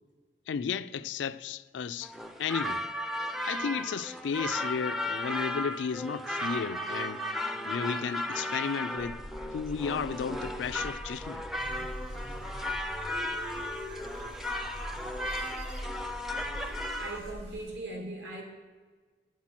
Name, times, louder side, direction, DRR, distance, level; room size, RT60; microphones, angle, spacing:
voice 1, 0.5-2.1 2.4-2.9 3.4-7.3 7.6-11.4, left 6 dB, 90° left, 0.4 m, -34 dB
sound 1, 2.0-17.2, left 1 dB, ahead, 0.4 m, -35 dB
sound 2, 9.0-17.6, equal, 90° right, 1.1 m, -46 dB
sound 3, 11.6-17.3, equal, 50° right, 1.9 m, -43 dB
voice 2, 17.0-18.4, right 2 dB, 70° right, 2.4 m, -39 dB
9.5 x 7.4 x 5.9 m
head